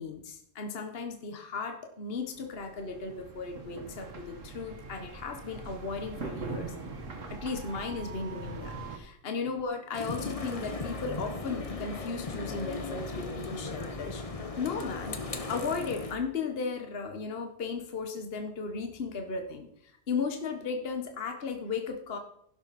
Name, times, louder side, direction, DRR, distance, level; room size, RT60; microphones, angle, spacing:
voice 1, 0.0-6.7 7.3-14.2 14.6-15.2 15.5-22.2, left 4 dB, 50° left, 5 dB, 1.5 m, -36 dB
sound 1, 2.3-9.0, right 3 dB, 75° right, 2.0 m, -42 dB
sound 2, 9.9-16.1, left 3 dB, 30° left, 1.2 m, -37 dB
11.5 x 11.5 x 4.2 m, 0.71 s
omnidirectional pair, 1.3 m